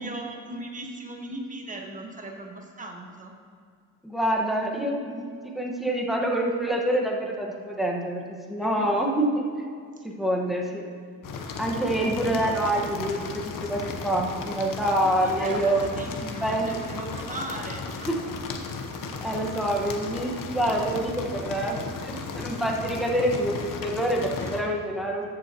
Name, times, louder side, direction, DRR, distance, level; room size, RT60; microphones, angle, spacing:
voice 1, 0.0-3.3 8.6-9.1 15.0-18.1 21.3-21.5 24.4-24.6, right 1 dB, 20° right, 2 dB, 1.3 m, -38 dB
voice 2, 4.0-5.2 5.5-9.4 10.0-10.9 11.6-15.8 16.2-16.7 18.0-18.2 19.2-25.2, right 1 dB, ahead, -1 dB, 1.4 m, -26 dB
sound 1, 11.2-24.6, left 4 dB, 55° left, 1.1 m, -35 dB
14.0 x 7.4 x 3.0 m, 2.2 s
cardioid pair, 105°, 39 cm